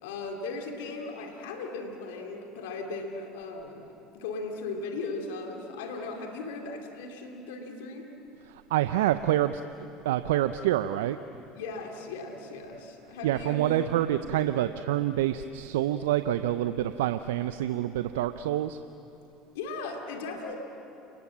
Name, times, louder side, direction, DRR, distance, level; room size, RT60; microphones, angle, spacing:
voice 1, 0.0-8.1 11.5-14.4 19.5-20.6, left 3 dB, 80° left, 3 dB, 2.7 m, -37 dB
voice 2, 8.5-11.2 13.2-18.8, right 13 dB, 80° right, 11 dB, 0.6 m, -27 dB
29.5 x 20.0 x 7.5 m, 2.9 s
hypercardioid pair, 75°, 0 cm